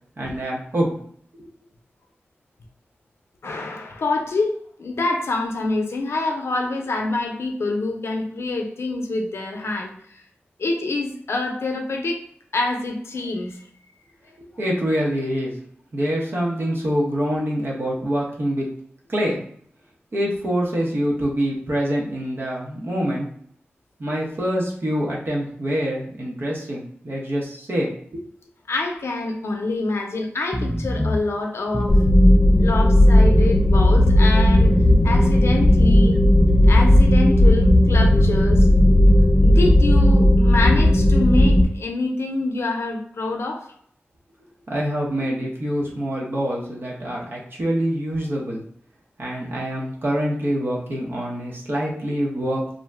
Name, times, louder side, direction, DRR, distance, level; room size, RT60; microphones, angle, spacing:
voice 1, 0.2-1.0 1.4-1.5 14.6-15.6 15.9-18.7 19.1-19.4 20.1-23.3 24.0-27.9 44.7-48.6 49.2-52.6, equal, 55° right, -3 dB, 0.8 m, -25 dB
voice 2, 3.4-9.9 10.6-12.2 12.5-13.6 28.7-32.0 32.6-34.8 35.0-36.2 36.7-38.7 39.4-43.7, left 2 dB, 80° left, 2 dB, 0.5 m, -26 dB
sound 1, 30.5-31.2 31.7-32.4 33.2-34.2 34.6-36.0 36.4-37.3 38.1-40.1, equal, ahead, 0.4 m, -26 dB
sound 2, 31.9-41.6, left 1 dB, 30° left, 0.7 m, -15 dB
2.6 x 2.1 x 3.3 m, 0.63 s
cardioid pair, 55°, 4 cm